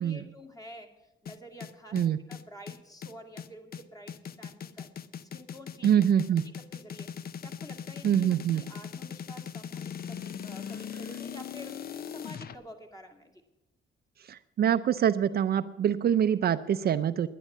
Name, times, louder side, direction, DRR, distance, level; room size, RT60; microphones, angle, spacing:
voice 1, 0.0-4.9 5.2-5.9 6.7-13.4, equal, 20° left, 3 dB, 2.4 m, -49 dB
sound 1, 1.3-12.5, left 8 dB, 50° left, 0.7 m, -40 dB
voice 2, 5.8-6.5 8.0-8.6 14.2-17.3, right 9 dB, 50° right, 11 dB, 0.5 m, -25 dB
11.5 x 9.9 x 7.3 m, 0.96 s
cardioid pair, 90°, 20 cm